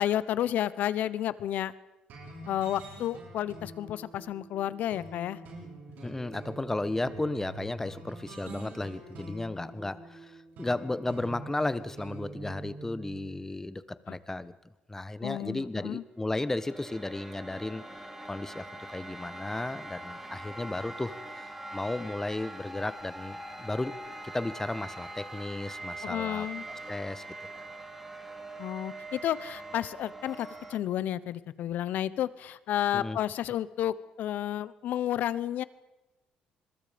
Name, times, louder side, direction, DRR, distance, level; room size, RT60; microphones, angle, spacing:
voice 1, 0.0-1.7 2.5-5.4 14.1-14.2 15.2-16.0 26.0-26.6 28.6-35.6, left 11 dB, 70° left, 17 dB, 1.1 m, -31 dB
sound 1, 2.1-13.4, right 2 dB, 70° right, 7.2 m, -45 dB
voice 2, 6.0-14.5 14.9-17.8 18.3-26.5 26.9-27.2 32.9-33.2, left 2 dB, 15° left, 14 dB, 1.3 m, -34 dB
sound 2, 16.2-30.8, right 2 dB, 10° right, 4.2 m, -43 dB
27.0 x 22.0 x 5.3 m, 1.0 s
cardioid pair, 85°, 3 cm